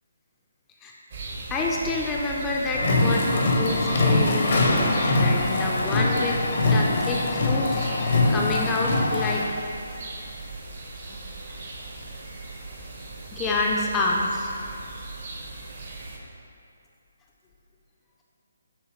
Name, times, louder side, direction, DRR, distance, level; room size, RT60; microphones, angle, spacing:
sound 1, 1.1-16.2, right 3 dB, 50° right, 0.7 m, -38 dB
voice 1, 1.5-6.4 6.7-9.6 13.3-14.5, left 2 dB, 15° left, -2 dB, 0.3 m, -28 dB
sound 2, 2.7-9.4, left 2 dB, 50° left, 0.6 m, -22 dB
6.4 x 2.7 x 3.0 m, 2.4 s
figure-of-eight pair, 145°, 0 cm